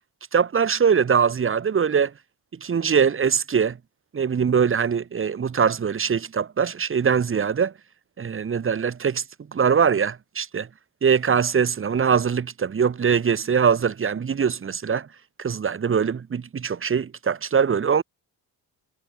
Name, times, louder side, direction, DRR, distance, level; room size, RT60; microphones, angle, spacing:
voice 1, 0.3-2.1 2.6-3.8 4.1-7.7 8.2-9.2 9.5-10.7 11.0-15.1 15.4-18.0, right 6 dB, 30° right, 2.1 m, -22 dB
cardioid pair, 150°, 42 cm